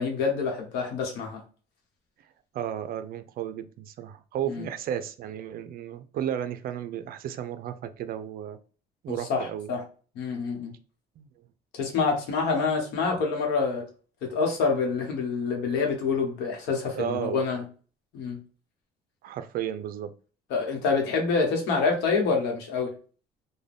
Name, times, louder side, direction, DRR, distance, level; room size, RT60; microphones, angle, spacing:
voice 1, 0.0-1.4 4.5-4.7 9.1-9.8 10.1-10.7 11.7-13.8 14.2-17.6 18.1-18.4 20.5-23.0, left 4 dB, 90° left, 2 dB, 1.0 m, -27 dB
voice 2, 2.5-8.6 9.0-9.7 11.2-11.3 17.0-17.4 19.2-20.1, right 10 dB, 60° right, 11 dB, 0.4 m, -33 dB
2.5 x 2.2 x 3.3 m, 0.38 s
cardioid pair, 110°, 17 cm